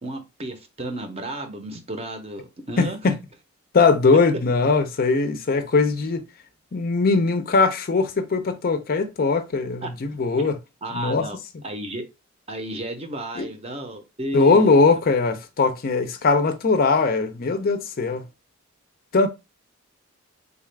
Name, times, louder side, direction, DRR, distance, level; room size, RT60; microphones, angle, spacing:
voice 1, 0.0-3.0 9.8-9.9 10.4-10.5 10.8-11.4 11.6-12.0 12.5-15.0, right 1 dB, 30° right, 0.6 m, -33 dB
voice 2, 2.8-3.2 3.7-6.2 6.7-10.6 10.9-11.3 13.4-13.5 14.3-18.2 19.1-19.3, left 4 dB, 45° left, 0.4 m, -20 dB
3.8 x 2.3 x 3.2 m
head